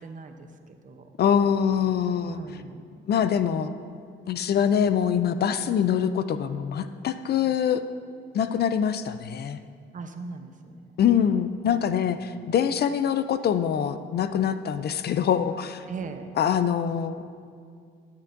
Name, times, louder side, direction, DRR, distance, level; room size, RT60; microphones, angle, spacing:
voice 1, 0.0-1.2 2.2-3.0 9.9-10.8 12.0-12.4 15.9-16.3, right 4 dB, 40° right, 6 dB, 0.8 m, -40 dB
voice 2, 1.2-2.4 3.1-3.7 4.3-7.8 8.3-9.6 11.0-15.8 16.4-17.2, left 8 dB, 55° left, 12 dB, 0.4 m, -24 dB
12.5 x 10.0 x 2.6 m, 2.2 s
cardioid pair, 90°, 20 cm